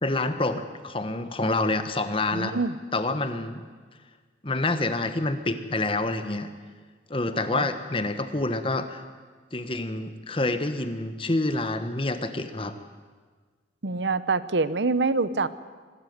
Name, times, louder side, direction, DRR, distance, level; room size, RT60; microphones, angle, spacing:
voice 1, 0.0-2.5 2.9-3.6 4.4-6.5 7.1-9.0 9.5-12.7, left 2 dB, 30° left, 10 dB, 1.2 m, -27 dB
voice 2, 2.3-2.8 7.5-7.7 13.8-15.5, right 3 dB, 80° right, 15 dB, 0.9 m, -25 dB
24.0 x 13.5 x 9.4 m, 1.5 s
head